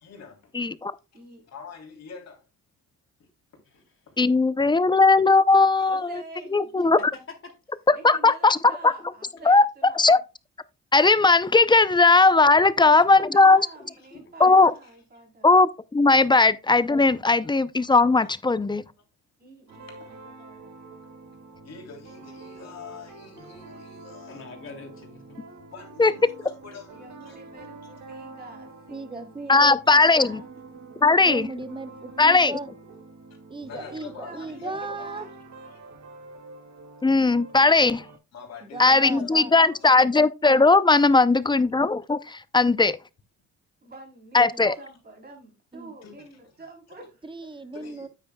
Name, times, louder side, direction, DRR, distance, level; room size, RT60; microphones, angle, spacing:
voice 1, 0.0-0.5 1.5-2.4 3.2-3.3 3.7-4.4 5.8-5.9 13.9-14.2 14.8-14.9 19.7-20.4 21.6-24.5 25.7-27.4 33.7-35.1 35.7-35.8 38.3-39.9 40.9-41.1 44.4-44.9 46.0-46.3 47.7-48.1, left 6 dB, 60° left, 3.2 m, -45 dB
voice 2, 0.5-0.9 4.2-6.2 6.5-7.0 8.0-8.9 9.4-9.7 9.9-10.2 10.9-13.7 14.4-14.7 15.4-18.8 26.0-26.1 29.5-30.4 31.0-31.5 32.2-32.5 37.0-38.0 38.8-43.0 44.3-44.7, left 3 dB, 15° left, 0.5 m, -18 dB
voice 3, 5.8-6.8 8.0-10.2 12.7-15.5 19.4-20.8 26.9-30.5 32.9-33.0 33.7-35.3 43.8-47.1, right 2 dB, 30° right, 3.5 m, -47 dB
voice 4, 6.8-7.8 14.2-14.3 24.3-25.4, left 4 dB, 45° left, 2.5 m, -44 dB
sound 1, 19.7-38.2, right 3 dB, 70° right, 2.1 m, -46 dB
voice 5, 28.9-29.8 31.2-32.7 33.5-35.3 38.6-39.5 45.7-45.9 47.2-48.1, right 3 dB, 15° right, 1.0 m, -36 dB
9.3 x 8.6 x 2.2 m
cardioid pair, 90°, 30 cm